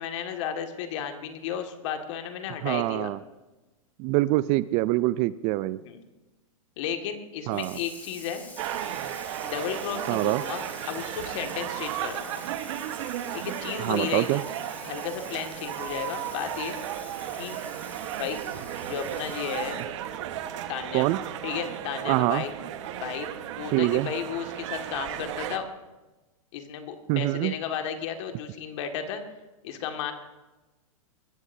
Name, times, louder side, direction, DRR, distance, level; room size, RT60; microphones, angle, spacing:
voice 1, 0.0-3.1 5.8-6.0 6.8-8.4 9.4-12.4 13.3-14.5 14.8-16.8 17.4-17.6 18.2-18.4 18.8-19.8 20.7-21.1 21.4-22.5 23.0-23.3 23.6-25.7 26.5-29.2 29.6-30.1, left 8 dB, 55° left, 5 dB, 2.0 m, -33 dB
voice 2, 2.6-3.2 4.0-5.8 7.5-7.7 10.1-10.4 13.8-14.4 20.9-21.2 22.0-22.4 23.7-24.1 27.1-27.5, right 18 dB, 35° right, 18 dB, 0.4 m, -24 dB
Water tap faucet / Sink (filling or washing), 7.5-20.0, left 2 dB, 10° left, 3.3 m, -47 dB
sound 1, 8.6-25.6, right 11 dB, 55° right, 1.3 m, -35 dB
22.0 x 14.0 x 2.7 m, 1.1 s
hypercardioid pair, 115°, 18 cm